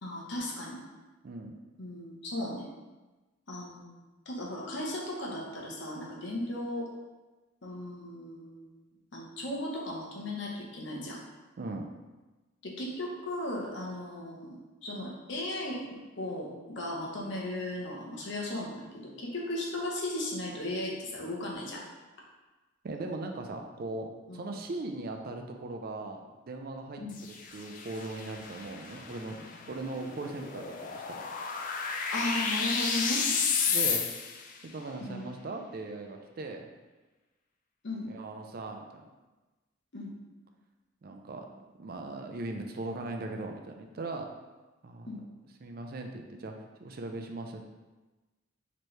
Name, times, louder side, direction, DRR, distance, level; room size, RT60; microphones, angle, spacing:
voice 1, 0.0-0.8 1.8-2.7 3.5-4.0 4.3-6.9 7.6-8.7 9.1-11.2 12.6-15.8 16.2-21.8 24.3-24.4 27.0-27.2 32.1-33.2 35.0-35.3 37.8-38.1 39.9-40.1 45.1-45.2, left 1 dB, 60° left, -2 dB, 0.9 m, -36 dB
voice 2, 11.6-11.9 22.8-27.0 27.5-29.4 29.7-31.2 33.7-34.0 34.6-36.7 38.1-39.1 41.0-44.3 44.8-45.2 45.6-46.5 46.8-47.6, right 2 dB, 45° right, 4 dB, 0.4 m, -39 dB
sound 1, 27.1-34.5, left 5 dB, 40° left, 0.3 m, -32 dB
4.4 x 3.0 x 3.2 m, 1.2 s
head